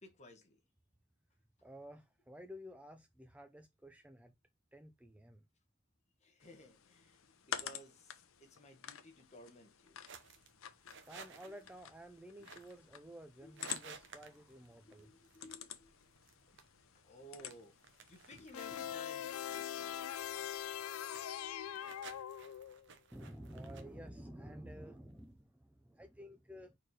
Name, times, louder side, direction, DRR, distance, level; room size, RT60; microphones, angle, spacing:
voice 1, 0.0-0.6 6.2-10.3 11.5-11.6 13.4-13.9 14.8-16.1 16.5-16.6 16.9-17.8 18.1-20.1 21.7-21.9, left 1 dB, 35° left, 1.5 m, -57 dB
voice 2, 1.6-4.3 4.7-5.4 11.1-15.1 23.1-26.8, equal, 5° right, 0.5 m, -52 dB
sound 1, 6.4-18.9, left 9 dB, 70° left, 0.7 m, -50 dB
sound 2, 10.1-25.4, right 5 dB, 60° right, 1.0 m, -58 dB
sound 3, 18.5-22.9, left 10 dB, 90° left, 0.3 m, -42 dB
4.6 x 4.4 x 4.8 m
head